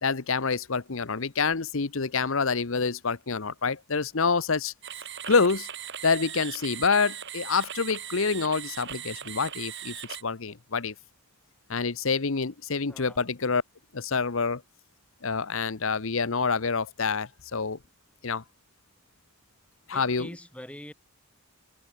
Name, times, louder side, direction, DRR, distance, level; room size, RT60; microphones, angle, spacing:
voice 1, 0.0-4.7 5.3-5.7 6.0-9.9 10.2-10.9 11.7-13.6 13.9-14.6 15.2-17.8 18.2-18.4 19.9-20.4, left 4 dB, 65° left, 1.0 m, -27 dB
sound 1, 4.8-10.2, right 10 dB, 55° right, 6.4 m, -39 dB
voice 2, 12.9-13.2 19.9-20.9, equal, 5° left, 3.0 m, -44 dB
head